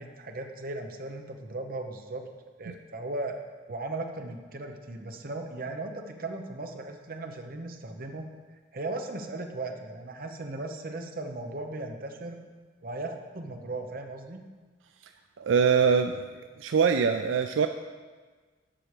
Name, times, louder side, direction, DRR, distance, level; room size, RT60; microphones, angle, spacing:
voice 1, 0.0-2.2 2.6-3.3 3.7-8.3 8.7-12.4 12.8-14.4, right 2 dB, 50° right, 4 dB, 0.9 m, -37 dB
voice 2, 15.4-16.2 16.6-17.7, right 6 dB, 80° right, 7 dB, 0.4 m, -23 dB
7.6 x 5.9 x 6.6 m, 1.4 s
head